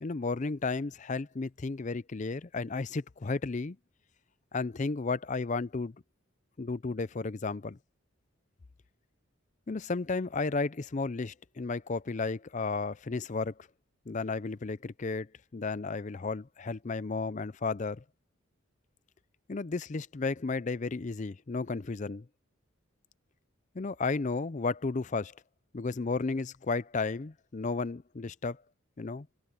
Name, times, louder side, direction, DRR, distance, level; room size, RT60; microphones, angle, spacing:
voice 1, 0.0-3.8 4.5-5.9 6.6-7.8 9.7-13.5 14.1-18.0 19.5-22.3 23.7-25.3 25.7-28.6 29.0-29.3, left 4 dB, 35° left, 0.5 m, -33 dB
head